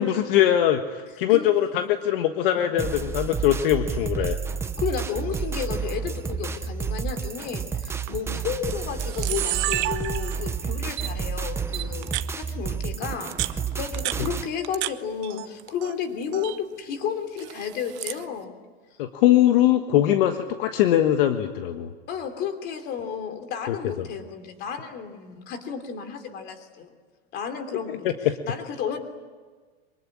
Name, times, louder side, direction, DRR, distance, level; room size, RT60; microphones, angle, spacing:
voice 1, 0.0-4.4 19.0-21.9 23.7-23.8 28.0-28.1, left 12 dB, 60° left, 7 dB, 1.5 m, -21 dB
sound 1, 2.8-14.5, right 6 dB, 10° right, 0.8 m, -30 dB
voice 2, 4.8-18.5 22.1-26.9 27.3-28.1 28.4-29.0, left 7 dB, 30° left, 8 dB, 3.3 m, -32 dB
Camera, 7.8-8.1 8.7-8.8 9.0-10.6 11.0-11.1 11.7-12.3 13.1-14.9 15.2-15.9 16.2-16.6 17.4-18.2, right 18 dB, 40° right, 0.9 m, -30 dB
24.5 x 23.5 x 10.0 m, 1.4 s
supercardioid pair, 155°, 31 cm